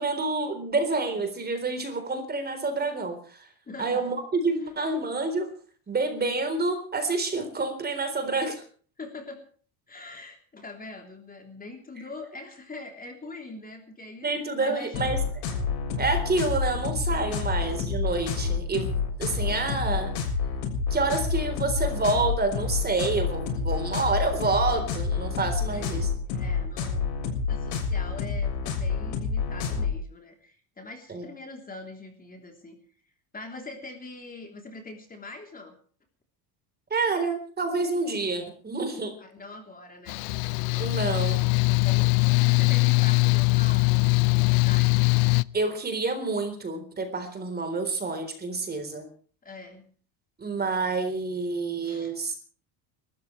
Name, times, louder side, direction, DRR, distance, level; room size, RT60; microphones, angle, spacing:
voice 1, 0.0-3.5 3.8-5.5 5.9-8.6 14.2-15.2 16.0-20.2 20.9-26.1 31.1-31.2 36.9-39.1 40.8-41.4 45.5-49.1 50.4-52.4, right 3 dB, 20° right, 7 dB, 3.9 m, -28 dB
voice 2, 3.7-4.1 4.6-4.7 9.0-9.4 9.9-15.1 17.4-17.6 25.6-32.8 33.3-35.8 39.2-40.2 41.7-45.0 49.4-49.9 51.8-52.1, left 3 dB, 20° left, 3 dB, 3.3 m, -43 dB
sound 1, 14.9-29.9, left 5 dB, 85° left, 7.1 m, -28 dB
Mechanical fan, 40.1-45.4, left 28 dB, 70° left, 0.7 m, -22 dB
29.0 x 13.5 x 3.2 m, 0.44 s
cardioid pair, 140°, 48 cm